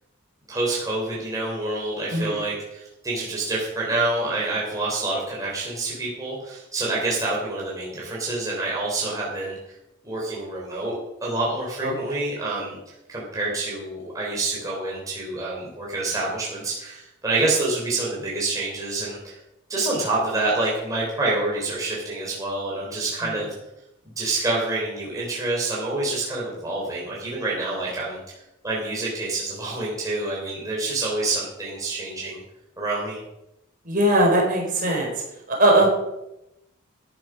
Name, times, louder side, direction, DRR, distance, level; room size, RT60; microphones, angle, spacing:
voice 1, 0.5-9.8 10.0-12.8 13.1-19.4 19.7-23.5 24.2-28.2 28.6-32.4 32.8-33.2, right 2 dB, 15° right, -5 dB, 3.6 m, -27 dB
voice 2, 11.8-12.1 33.9-35.1 35.5-35.9, right 1 dB, 40° right, 0 dB, 4.5 m, -20 dB
13.5 x 10.0 x 6.2 m, 0.89 s
head